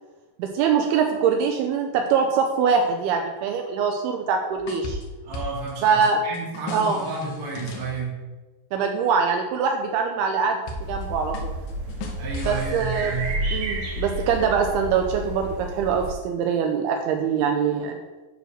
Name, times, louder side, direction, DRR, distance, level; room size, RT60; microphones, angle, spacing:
voice 1, 0.4-5.0 5.8-6.2 6.7-7.1 8.7-10.6 10.9-11.5 12.4-13.1 13.5-18.0, right 6 dB, 85° right, 3 dB, 2.4 m, -23 dB
sound 1, 4.5-5.7 6.0-8.0 10.7-11.0 11.3-13.3, left 2 dB, 75° left, 2.7 m, -36 dB
voice 2, 5.2-8.1 12.2-13.3, right 4 dB, 45° right, -4 dB, 1.2 m, -31 dB
sound 2, 10.8-16.1, right 1 dB, 65° right, 2.5 m, -31 dB
9.2 x 3.1 x 6.3 m, 1.2 s
omnidirectional pair, 4.9 m